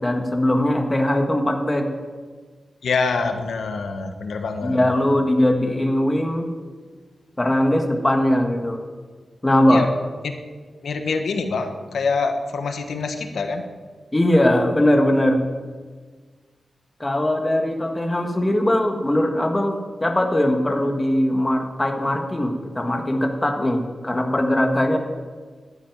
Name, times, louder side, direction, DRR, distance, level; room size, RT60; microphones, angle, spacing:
voice 1, 0.0-1.9 4.6-6.5 7.4-8.8 9.4-9.9 14.1-15.4 17.0-25.0, left 1 dB, 15° left, 3 dB, 1.5 m, -20 dB
voice 2, 2.8-4.8 9.7-9.9 10.2-10.4 10.8-13.6, left 4 dB, 85° left, 6 dB, 1.3 m, -25 dB
11.5 x 9.6 x 9.3 m, 1.5 s
wide cardioid pair, 160°, 0 cm